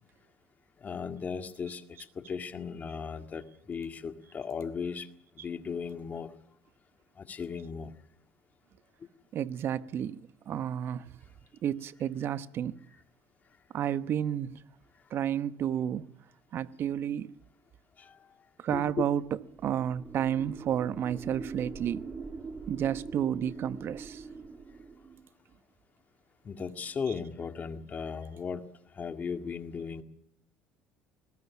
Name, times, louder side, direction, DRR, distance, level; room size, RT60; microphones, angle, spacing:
voice 1, 0.8-1.8 2.2-5.1 5.4-6.3 7.2-7.9 18.0-18.2 18.7-19.1 26.4-28.6 28.9-30.0, left 6 dB, 35° left, 1.9 m, -36 dB
voice 2, 9.3-10.2 10.5-11.1 11.6-12.8 13.7-14.6 15.1-16.1 16.5-17.3 18.6-22.0 22.7-24.2 27.1-27.2, right 9 dB, 50° right, 1.0 m, -31 dB
sound 1, 19.1-25.3, right 4 dB, 30° right, 2.3 m, -43 dB
21.5 x 19.5 x 7.2 m
cardioid pair, 105°, 5 cm